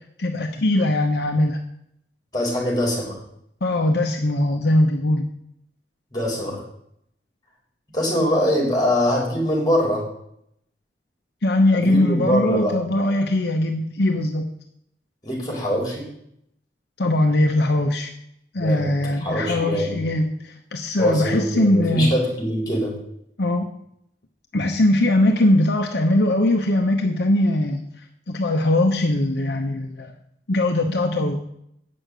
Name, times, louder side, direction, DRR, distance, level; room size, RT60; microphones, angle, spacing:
voice 1, 0.2-1.6 3.6-5.3 11.4-14.5 17.0-18.1 18.5-22.1 23.4-23.6 24.5-27.8 28.3-30.1 30.5-31.4, left 1 dB, 65° left, 3 dB, 0.9 m, -20 dB
voice 2, 2.3-3.2 6.1-6.6 7.9-10.0 11.7-12.7 15.2-16.1 18.6-18.9 19.2-20.0 21.0-23.0, equal, 25° left, -2 dB, 4.4 m, -23 dB
8.7 x 6.5 x 7.9 m, 0.73 s
head